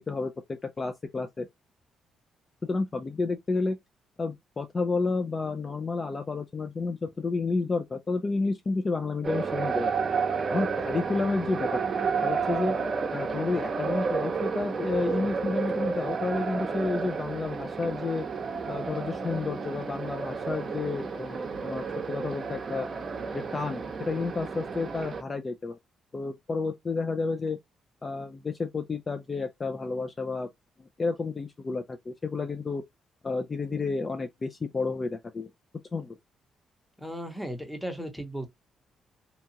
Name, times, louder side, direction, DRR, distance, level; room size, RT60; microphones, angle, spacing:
voice 1, 0.0-1.5 2.6-3.8 4.2-9.9 10.5-11.8 12.2-12.7 13.1-18.2 18.7-22.9 23.3-25.8 26.1-27.6 28.0-30.5 31.0-32.8 33.2-35.5 35.9-36.2, left 3 dB, 30° left, 0.3 m, -31 dB
sound 1, 9.2-25.2, right 5 dB, 45° right, 0.6 m, -31 dB
voice 2, 37.0-38.5, equal, ahead, 0.8 m, -36 dB
2.8 x 2.3 x 2.7 m
cardioid pair, 90°, 0 cm